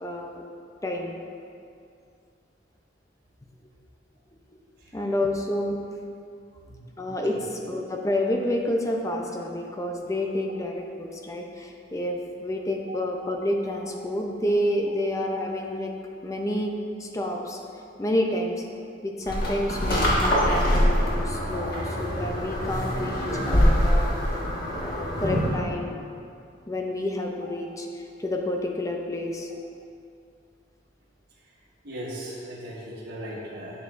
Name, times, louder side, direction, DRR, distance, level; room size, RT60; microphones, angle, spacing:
voice 1, 0.0-0.4 0.8-1.2 4.9-5.8 7.0-7.4 7.7-15.9 16.2-16.7 17.0-17.6 18.0-18.6 19.0-24.1 24.7-25.9 26.7-29.5, left 1 dB, 15° left, 1 dB, 0.6 m, -29 dB
voice 2, 4.8-5.1 6.7-6.9 7.3-7.4 12.9-13.0 31.4-31.6 31.8-33.8, equal, 55° right, -8 dB, 1.4 m, -38 dB
sound 1, 19.3-25.6, equal, 50° left, 1.6 m, -24 dB
10.5 x 7.0 x 2.6 m, 2.4 s
head